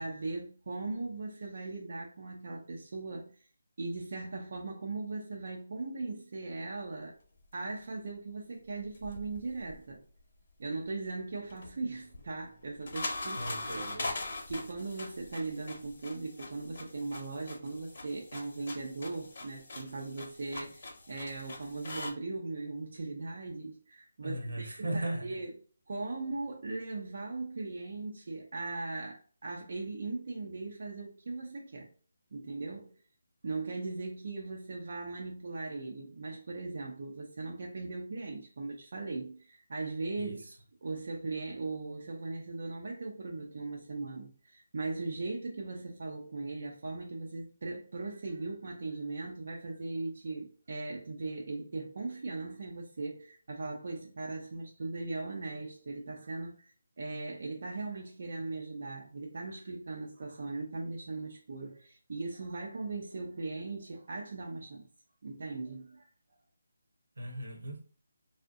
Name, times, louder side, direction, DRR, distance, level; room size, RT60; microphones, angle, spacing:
voice 1, 0.0-3.3 3.8-7.2 7.5-10.0 10.6-13.9 14.5-25.5 25.9-31.9 32.3-32.9 33.4-40.4 40.8-64.9 65.2-66.1, right 3 dB, 55° right, 0.5 m, -39 dB
sound 1, 8.8-10.2 11.4-22.1, left 2 dB, 45° left, 0.7 m, -42 dB
voice 2, 13.4-14.1 24.2-25.2 40.2-40.4 67.2-67.8, right 1 dB, 85° right, 0.9 m, -37 dB
2.6 x 2.1 x 3.6 m
figure-of-eight pair, 170°, 0 cm